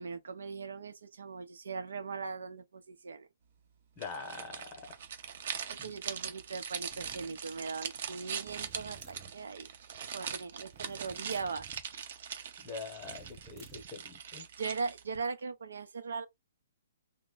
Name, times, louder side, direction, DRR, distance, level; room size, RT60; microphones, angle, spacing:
voice 1, 0.0-3.3 5.7-9.7 10.1-11.7 14.6-16.3, right 4 dB, 85° right, 0.7 m, -39 dB
voice 2, 4.0-4.8 5.8-5.9 12.6-14.5, left 4 dB, 20° left, 0.9 m, -44 dB
sound 1, 4.0-15.2, right 7 dB, 50° right, 0.7 m, -42 dB
sound 2, 6.9-7.3 8.5-9.4 10.7-11.9 13.0-14.0, right 6 dB, 15° right, 0.5 m, -54 dB
3.1 x 2.1 x 3.8 m
hypercardioid pair, 165°, 0 cm